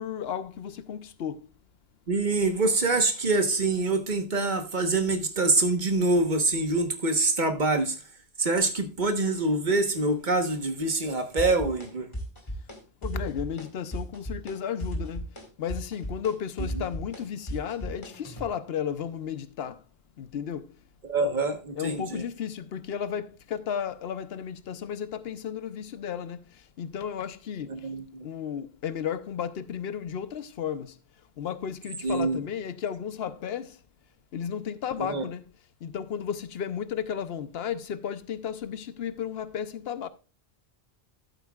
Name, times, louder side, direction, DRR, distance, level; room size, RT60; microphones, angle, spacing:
voice 1, 0.0-1.4 13.0-15.2 15.6-19.7 20.2-20.6 21.8-26.4 26.8-27.7 28.2-30.9 31.4-33.7 34.3-35.4 35.8-40.1, left 8 dB, 70° left, 0.9 m, -33 dB
voice 2, 2.1-8.0 8.4-12.1 21.0-22.2 27.7-28.0 32.0-32.4 35.1-35.3, right 2 dB, 45° right, 1.3 m, -25 dB
sound 1, 11.4-11.9 12.1-12.8 13.0-13.7 13.9-14.6 14.8-18.5, equal, 25° left, 2.1 m, -35 dB
13.0 x 8.1 x 2.3 m
omnidirectional pair, 1.1 m